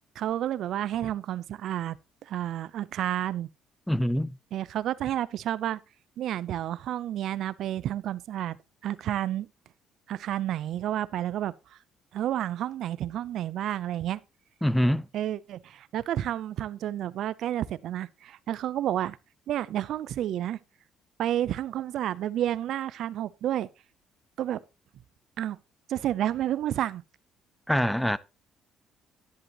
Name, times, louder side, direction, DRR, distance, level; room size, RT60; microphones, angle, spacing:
voice 1, 0.2-2.0 2.3-3.5 4.5-5.8 6.2-8.6 8.8-9.5 10.1-11.5 12.1-14.2 15.1-19.2 19.5-20.6 21.2-23.7 24.4-24.6 25.4-25.6 25.9-27.0, right 12 dB, 70° right, 0.5 m, -30 dB
voice 2, 3.9-4.3 14.6-15.1 27.7-28.2, equal, 5° left, 0.6 m, -24 dB
11.0 x 10.0 x 2.9 m
supercardioid pair, 80°, 0 cm